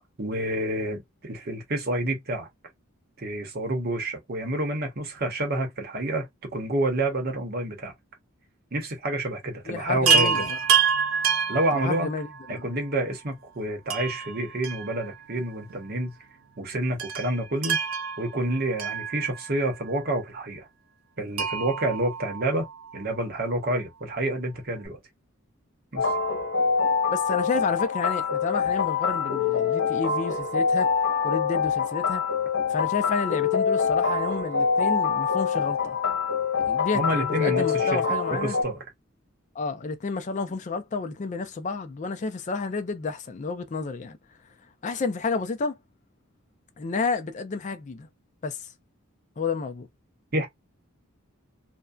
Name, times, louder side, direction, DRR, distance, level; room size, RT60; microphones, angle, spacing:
voice 1, 0.2-2.5 3.2-6.3 6.5-7.9 8.7-10.5 11.5-12.1 12.5-16.1 16.6-17.8 18.2-20.7 21.2-22.6 22.9-25.0 25.9-26.1 36.9-38.8 50.3-50.5, right 1 dB, 45° right, 0.8 m, -28 dB
voice 2, 9.7-10.6 11.7-12.7 27.1-30.9 31.2-32.2 32.7-36.0 36.5-38.6 39.6-44.2 44.8-45.8 46.8-48.1 48.4-48.6 49.4-49.9, left 4 dB, 35° left, 0.4 m, -30 dB
Chime, 10.1-12.5 13.9-15.4 15.7-15.8 17.0-19.7 21.4-23.0 24.5-24.6 24.9-25.0, right 6 dB, 70° right, 0.4 m, -27 dB
sound 1, 26.0-38.6, left 6 dB, 70° left, 1.3 m, -25 dB
2.6 x 2.1 x 2.3 m
head